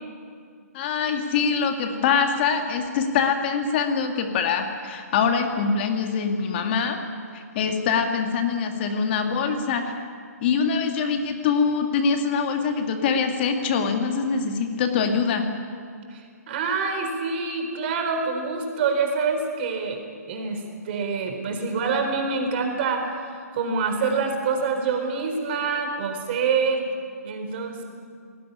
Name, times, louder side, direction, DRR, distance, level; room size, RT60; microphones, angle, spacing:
voice 1, 0.7-7.0 7.3-9.9 10.4-15.5, left 5 dB, 40° left, 5 dB, 2.0 m, -24 dB
voice 2, 16.1-20.0 20.3-23.1 23.5-26.9 27.2-27.8, right 5 dB, 40° right, 4 dB, 4.2 m, -26 dB
19.0 x 17.0 x 9.9 m, 2.2 s
hypercardioid pair, 140°, 9 cm